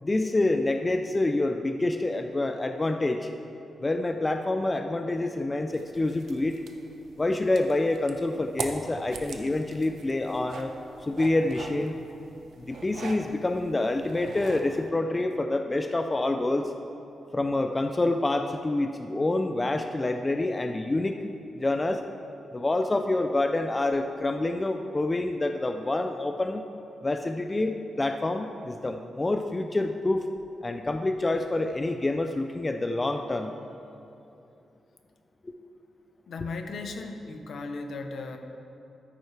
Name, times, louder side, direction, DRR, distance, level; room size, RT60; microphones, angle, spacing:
voice 1, 0.0-3.3 3.8-6.6 7.2-10.7 11.0-12.0 12.6-16.7 17.3-21.2 21.6-22.0 22.5-26.6 27.0-30.3 30.6-33.5 35.4-35.5, left 2 dB, 20° left, 6 dB, 0.3 m, -27 dB
sound 1, 5.7-14.9, right 4 dB, 70° right, 0.7 m, -42 dB
voice 2, 36.3-38.4, left 3 dB, 65° left, 5 dB, 0.8 m, -36 dB
13.5 x 9.2 x 3.3 m, 2.8 s
wide cardioid pair, 145°, 0 cm